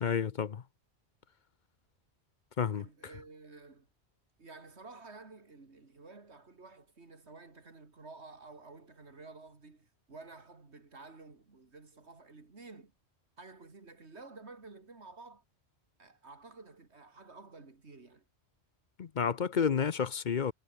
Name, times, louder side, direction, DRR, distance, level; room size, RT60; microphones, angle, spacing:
voice 1, 0.0-0.6 2.6-2.8 19.0-20.5, left 7 dB, 50° left, 0.8 m, -30 dB
voice 2, 2.7-3.9 4.4-12.9 13.4-15.4 16.0-18.2, right 3 dB, 80° right, 3.0 m, -52 dB
omnidirectional pair, 1.1 m